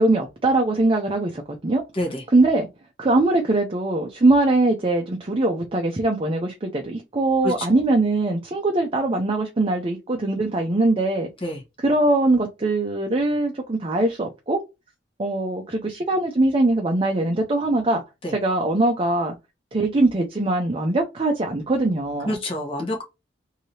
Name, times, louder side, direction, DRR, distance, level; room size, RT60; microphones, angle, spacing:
voice 1, 0.0-1.8 2.3-2.7 3.0-11.3 11.8-14.6 15.2-18.0 18.3-19.3 19.7-22.3, right 2 dB, 30° right, 0.5 m, -21 dB
voice 2, 22.2-23.0, left 1 dB, 30° left, 1.0 m, -27 dB
3.3 x 2.7 x 2.7 m
head